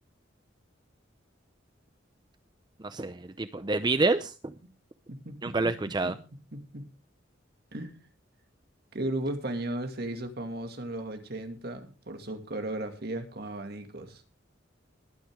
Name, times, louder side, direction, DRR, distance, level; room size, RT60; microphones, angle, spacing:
voice 1, 2.8-4.5 5.4-6.1, right 3 dB, 25° right, 11 dB, 0.5 m, -28 dB
voice 2, 5.1-5.6 6.0-6.1 6.5-6.9 7.7-8.0 8.9-14.2, right 1 dB, 55° right, 6 dB, 2.2 m, -35 dB
21.5 x 9.2 x 3.6 m, 0.32 s
head